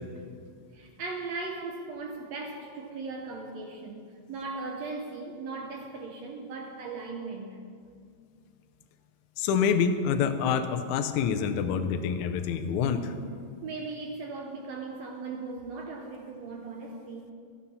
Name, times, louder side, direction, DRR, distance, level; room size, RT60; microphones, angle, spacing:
voice 1, 0.7-7.6 13.6-17.3, right 3 dB, 70° right, 2 dB, 1.8 m, -38 dB
voice 2, 9.4-13.1, left 7 dB, 75° left, 7 dB, 1.9 m, -27 dB
13.0 x 9.7 x 5.7 m, 2.2 s
omnidirectional pair, 3.8 m